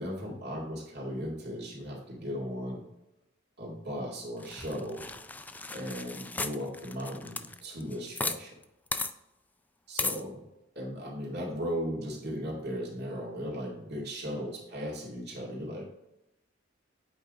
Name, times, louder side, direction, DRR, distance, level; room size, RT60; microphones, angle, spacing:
voice 1, 0.0-2.8 3.6-5.0 5.7-8.6 9.9-10.4 10.8-15.8, equal, 55° right, -3 dB, 2.2 m, -37 dB
sound 1, 4.4-8.4 8.6-8.7 8.9-9.1 10.0-10.2, left 3 dB, 10° left, 0.3 m, -35 dB
8.4 x 4.0 x 3.6 m, 0.92 s
head